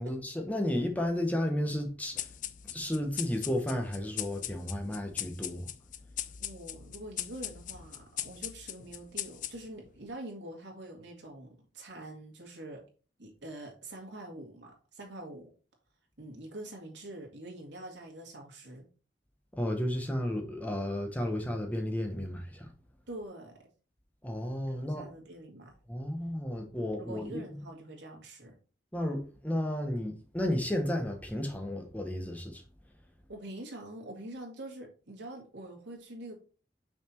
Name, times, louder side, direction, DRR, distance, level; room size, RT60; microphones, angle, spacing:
voice 1, 0.0-2.2 2.7-5.7 19.6-22.7 24.2-25.1 25.9-27.4 28.9-32.6, left 1 dB, 10° left, 1.0 m, -33 dB
sound 1, 2.2-9.9, left 12 dB, 45° left, 0.4 m, -40 dB
voice 2, 6.4-12.8 13.2-15.5 16.2-18.9 23.1-23.5 24.7-25.7 27.0-28.5 33.3-36.4, right 1 dB, 75° right, 2.2 m, -45 dB
5.9 x 4.3 x 4.4 m
head